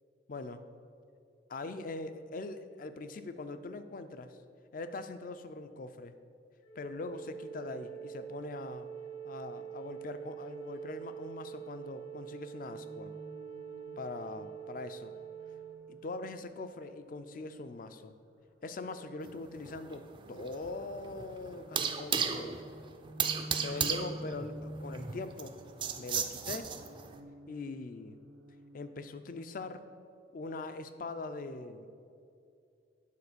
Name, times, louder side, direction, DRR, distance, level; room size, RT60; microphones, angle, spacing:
voice 1, 0.3-0.6 1.5-4.4 4.7-6.1 6.8-8.9 9.2-13.1 14.0-15.1 15.9-18.1 18.6-22.6 23.6-25.6 26.0-26.7 27.5-28.2 28.7-29.9 30.3-31.9, left 3 dB, 45° left, 10 dB, 0.4 m, -42 dB
Wind instrument woodwind instrument, 6.6-15.8, right 8 dB, 65° left, 1.1 m, -45 dB
sound 1, 12.7-16.8 19.9-29.1, equal, 85° right, 0.6 m, -50 dB
sound 2, 19.3-27.1, right 7 dB, 25° right, 0.4 m, -35 dB
8.4 x 4.2 x 6.7 m, 2.4 s
head